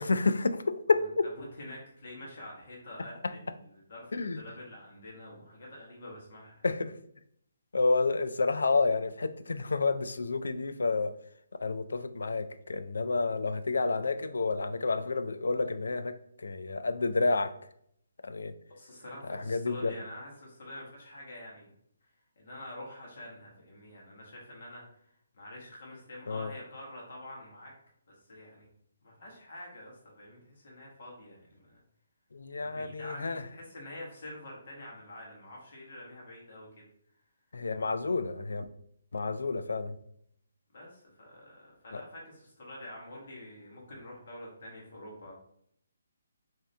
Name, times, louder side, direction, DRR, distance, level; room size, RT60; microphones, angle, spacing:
voice 1, 0.0-1.3 4.1-4.4 6.6-6.9 7.7-11.1 11.6-17.5 18.2-18.5 19.3-19.9 26.3-26.5 32.3-33.4 37.5-38.6 39.1-40.0 41.9-42.0, left 3 dB, 90° left, 11 dB, 0.3 m, -29 dB
voice 2, 1.4-6.6 18.7-21.7 22.0-22.1 22.3-27.7 28.2-28.7 29.0-31.8 32.6-36.8 40.7-45.3, left 1 dB, 45° left, -3 dB, 1.5 m, -47 dB
3.5 x 2.8 x 3.3 m, 0.69 s
hypercardioid pair, 170°, 0 cm